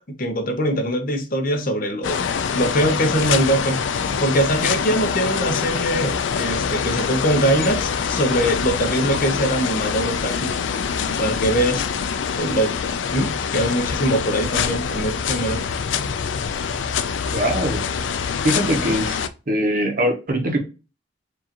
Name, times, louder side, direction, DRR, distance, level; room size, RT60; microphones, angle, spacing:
voice 1, 0.0-2.2 2.5-3.8 4.2-10.5 11.2-11.9 12.4-12.8 13.1-15.6, right 1 dB, 50° left, 0.9 m, -22 dB
sound 1, 2.0-19.3, left 6 dB, 90° left, 0.4 m, -25 dB
voice 2, 17.3-17.8 18.4-19.2 19.5-20.6, equal, 50° right, 0.9 m, -21 dB
4.8 x 2.6 x 2.9 m
head